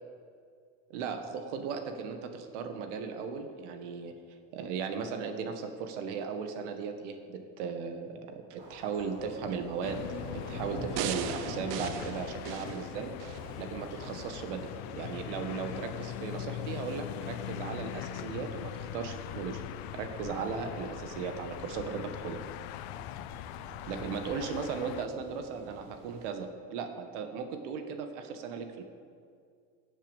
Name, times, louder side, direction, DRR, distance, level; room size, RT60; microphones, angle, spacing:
voice 1, 0.9-4.2 4.5-13.2 13.6-19.6 19.9-22.4 23.9-28.8, right 5 dB, 80° right, 6 dB, 1.7 m, -37 dB
sound 1, 8.6-26.3, right 2 dB, 30° right, 3.4 m, -49 dB
sound 2, 9.8-25.1, left 14 dB, 65° left, 0.6 m, -41 dB
sound 3, 11.0-13.4 13.9-14.1, right 10 dB, 50° right, 0.8 m, -37 dB
18.5 x 7.4 x 7.2 m, 2.2 s
cardioid pair, 170°, 35 cm